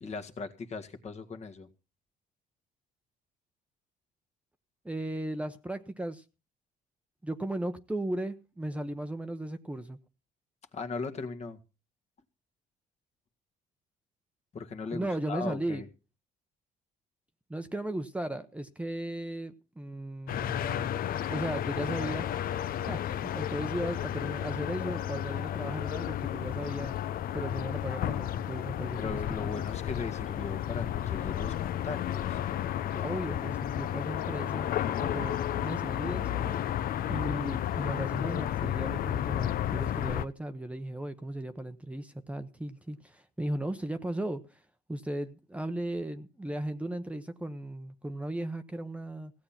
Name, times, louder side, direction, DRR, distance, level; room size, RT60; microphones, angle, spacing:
voice 1, 0.0-1.7 10.7-11.6 14.5-15.9 29.0-32.4 32.8-33.2, left 4 dB, 40° left, 7 dB, 1.9 m, -38 dB
voice 2, 4.8-6.2 7.2-10.0 14.9-15.8 17.5-20.9 21.3-26.9 27.3-29.5 33.0-36.6 37.1-44.6 44.9-49.3, right 1 dB, 5° right, 8 dB, 1.0 m, -36 dB
sound 1, 20.3-40.3, left 11 dB, 60° left, 0.8 m, -32 dB
16.5 x 8.6 x 5.9 m, 0.32 s
cardioid pair, 110°, 17 cm